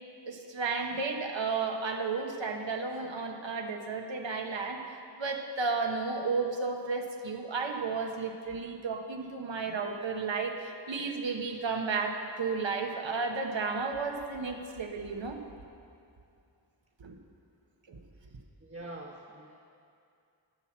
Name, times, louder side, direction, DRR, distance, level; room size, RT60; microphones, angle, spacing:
voice 1, 0.3-15.4 17.0-17.2 17.9-18.0, right 4 dB, 80° right, 4 dB, 1.0 m, -33 dB
voice 2, 18.1-19.7, right 1 dB, 30° right, -3 dB, 1.0 m, -46 dB
13.0 x 5.8 x 7.3 m, 2.5 s
wide cardioid pair, 75°, 44 cm